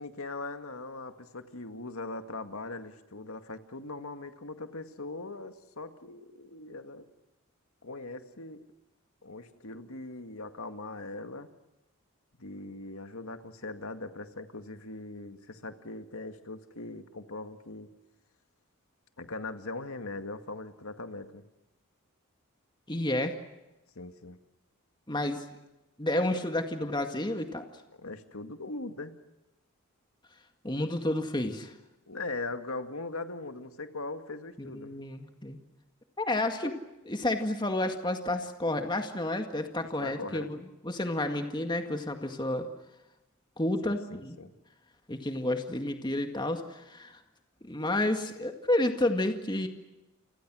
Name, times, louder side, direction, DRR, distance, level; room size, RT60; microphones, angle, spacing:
voice 1, 0.0-7.0 7.8-8.6 9.2-11.5 12.4-17.9 19.2-21.4 24.0-24.4 28.0-29.1 32.1-34.9 40.0-40.7 43.8-44.5, left 2 dB, 80° left, 8 dB, 2.1 m, -40 dB
voice 2, 22.9-23.4 25.1-25.4 26.0-27.7 30.6-31.7 34.6-35.6 36.2-36.8 37.1-40.6 40.8-42.7 43.6-44.4 45.1-47.2 47.6-49.7, left 1 dB, 20° left, 5 dB, 2.0 m, -30 dB
30.0 x 26.0 x 6.3 m, 0.98 s
head